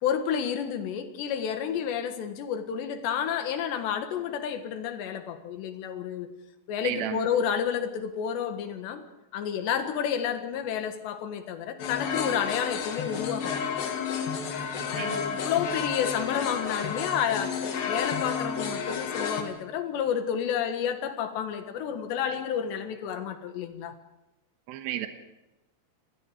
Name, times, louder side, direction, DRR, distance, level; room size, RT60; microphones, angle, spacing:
voice 1, 0.0-6.3 6.7-9.0 9.3-13.8 15.0-23.9, left 8 dB, 85° left, 7 dB, 3.7 m, -30 dB
voice 2, 6.8-7.3 14.8-15.2 24.7-25.1, right 12 dB, 70° right, 6 dB, 2.7 m, -33 dB
sound 1, 11.8-19.4, left 6 dB, 65° left, 3.6 m, -31 dB
27.0 x 19.5 x 5.0 m, 1.0 s
omnidirectional pair, 4.9 m